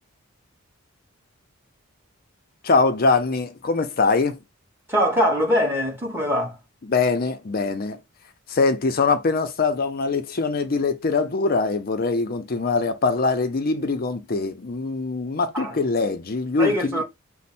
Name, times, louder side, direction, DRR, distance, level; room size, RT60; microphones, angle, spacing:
voice 1, 2.6-4.4 6.9-8.0 8.5-17.0, left 4 dB, 45° left, 0.5 m, -23 dB
voice 2, 4.9-6.6 15.5-15.8 16.6-17.0, equal, 10° right, 1.2 m, -22 dB
5.3 x 2.0 x 4.1 m
head